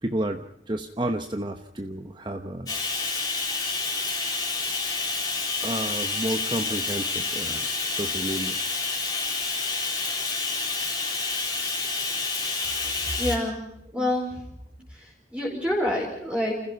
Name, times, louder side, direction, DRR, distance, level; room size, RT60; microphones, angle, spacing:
voice 1, 0.0-2.8 5.6-8.6 10.8-10.9 11.8-11.9 13.9-14.1, right 1 dB, 25° right, 6 dB, 1.0 m, -31 dB
Bathtub (filling or washing), 2.7-13.4, left 3 dB, 20° left, 4.2 m, -29 dB
voice 2, 13.2-13.6 13.9-14.5 14.9-16.5, left 1 dB, 5° right, -2 dB, 4.7 m, -27 dB
28.5 x 15.5 x 5.8 m, 0.76 s
head